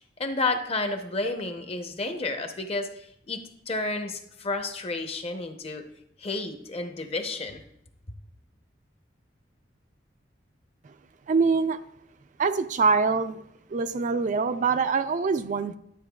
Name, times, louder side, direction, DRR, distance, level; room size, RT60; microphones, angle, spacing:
voice 1, 0.2-5.9 6.2-7.6, left 3 dB, 35° left, 0.8 m, -31 dB
voice 2, 11.3-11.8 12.4-13.4 13.7-15.8, right 4 dB, 45° right, 0.4 m, -24 dB
11.5 x 8.3 x 2.3 m
head